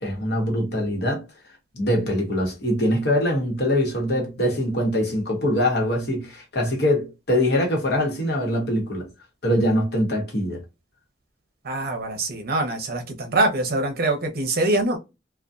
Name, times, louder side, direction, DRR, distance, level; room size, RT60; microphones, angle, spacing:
voice 1, 0.0-1.2 1.7-9.1 9.4-10.6, left 1 dB, 65° left, 1.1 m, -23 dB
voice 2, 11.6-15.0, right 2 dB, 55° right, 0.7 m, -24 dB
2.6 x 2.3 x 2.3 m
head